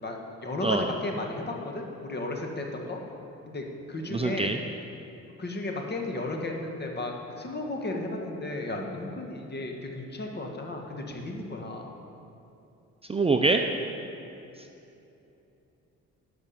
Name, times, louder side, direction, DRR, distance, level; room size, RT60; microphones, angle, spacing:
voice 1, 0.0-3.0 3.5-4.6 5.4-11.9, left 2 dB, 35° left, 2 dB, 1.6 m, -34 dB
voice 2, 4.1-4.6 13.1-13.6, right 3 dB, 20° right, 4 dB, 0.5 m, -24 dB
11.0 x 6.0 x 7.1 m, 2.8 s
cardioid pair, 90°, 30 cm